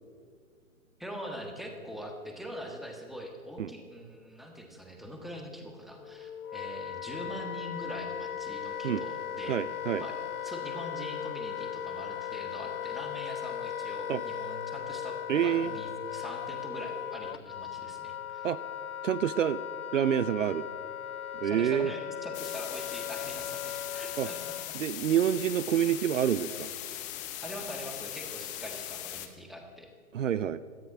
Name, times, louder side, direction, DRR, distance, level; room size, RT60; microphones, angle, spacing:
voice 1, 1.0-9.6 10.0-10.2 10.4-18.5 21.4-24.8 27.4-29.9, equal, ahead, 2 dB, 1.5 m, -43 dB
Wind instrument woodwind instrument, 6.0-24.8, left 9 dB, 75° left, 0.6 m, -38 dB
voice 2, 9.5-10.0 14.1-14.2 15.3-15.8 18.4-18.6 19.0-19.6 19.9-20.7 21.3-21.9 24.2-24.3 24.7-26.7 30.1-30.6, right 9 dB, 60° right, 16 dB, 0.6 m, -27 dB
sound 1, 22.3-29.3, left 12 dB, 15° left, 1.0 m, -39 dB
17.0 x 13.0 x 6.0 m, 2.1 s
figure-of-eight pair, 135°, 44 cm